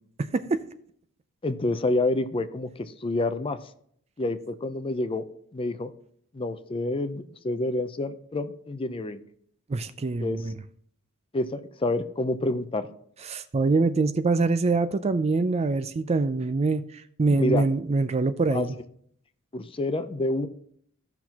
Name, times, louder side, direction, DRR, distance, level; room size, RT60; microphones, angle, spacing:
voice 1, 1.4-3.6 4.2-5.3 5.5-5.9 6.3-9.2 10.2-10.4 11.3-12.9 17.3-17.7 18.5-18.7 19.5-20.5, left 2 dB, 25° left, 0.5 m, -28 dB
voice 2, 9.7-10.5 13.3-16.8 17.2-18.7, right 3 dB, 30° right, 0.4 m, -24 dB
15.5 x 6.0 x 2.9 m
head